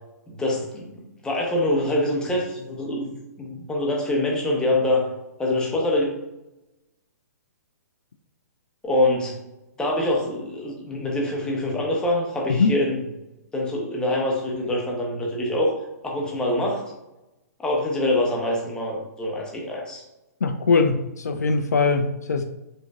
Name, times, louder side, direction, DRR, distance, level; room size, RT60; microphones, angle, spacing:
voice 1, 0.3-3.1 3.4-5.1 5.4-6.1 8.8-9.3 9.8-13.0 13.5-15.7 16.0-16.8 17.6-20.0, left 1 dB, 10° left, -2 dB, 1.1 m, -24 dB
voice 2, 20.4-22.4, left 4 dB, 75° left, 7 dB, 0.4 m, -21 dB
5.1 x 3.7 x 2.5 m, 0.96 s
figure-of-eight pair, 120°, 9 cm